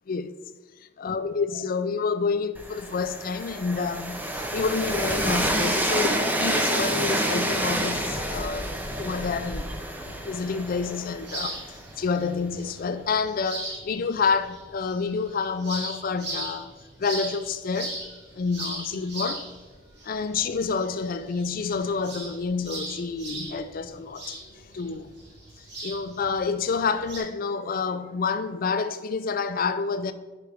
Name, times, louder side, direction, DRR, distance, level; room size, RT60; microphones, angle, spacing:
voice 1, 1.0-8.7 9.0-9.7 10.0-16.7 17.0-18.0 18.3-19.4 20.0-24.4 24.7-25.1 25.8-30.1, left 5 dB, 50° left, 0.4 m, -28 dB
Train, 2.5-12.4, right 1 dB, 10° right, 0.6 m, -28 dB
sound 1, 11.2-27.2, right 2 dB, 65° right, 2.4 m, -39 dB
10.0 x 4.9 x 3.4 m
head